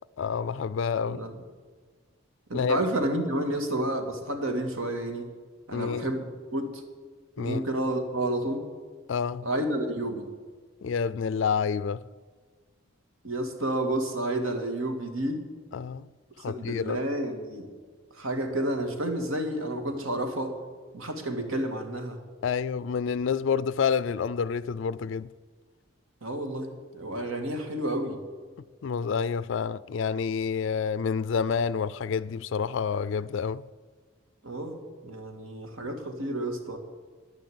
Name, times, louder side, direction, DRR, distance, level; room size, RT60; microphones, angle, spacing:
voice 1, 0.2-1.3 2.5-2.8 5.7-6.1 7.4-7.7 9.1-9.5 10.8-12.0 15.7-16.1 16.4-17.0 22.4-25.3 28.8-33.7, left 6 dB, 65° left, 0.4 m, -28 dB
voice 2, 2.5-5.3 5.7-6.8 7.4-8.7 9.4-10.3 13.2-15.4 16.5-17.7 18.1-20.6 20.9-22.2 26.2-28.2 34.4-36.8, right 1 dB, 80° right, 2.1 m, -30 dB
11.0 x 10.5 x 7.9 m
head